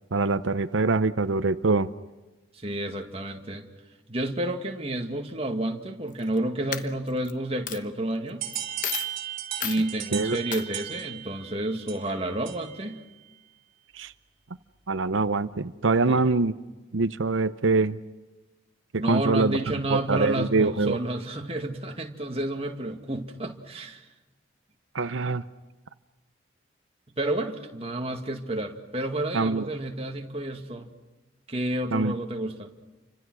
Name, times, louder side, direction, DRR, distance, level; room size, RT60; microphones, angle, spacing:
voice 1, 0.1-1.9 10.1-10.4 13.9-14.1 14.9-16.6 16.9-18.0 18.9-21.0 24.9-25.4 29.3-29.7 31.9-32.1, right 3 dB, 90° right, 12 dB, 0.8 m, -24 dB
voice 2, 2.5-3.7 4.1-8.5 9.6-13.0 16.1-16.2 19.0-24.1 27.2-30.9 31.5-32.7, right 1 dB, 30° right, 3 dB, 2.2 m, -30 dB
Coin (dropping), 6.1-6.4 6.7-7.3 7.7-7.8 8.5-8.6 8.8-9.1 9.6-9.8 10.5-10.7, left 9 dB, 45° left, 1.1 m, -32 dB
sound 1, 8.4-12.9, right 11 dB, 50° right, 4.0 m, -36 dB
29.5 x 25.5 x 6.3 m, 1.2 s
head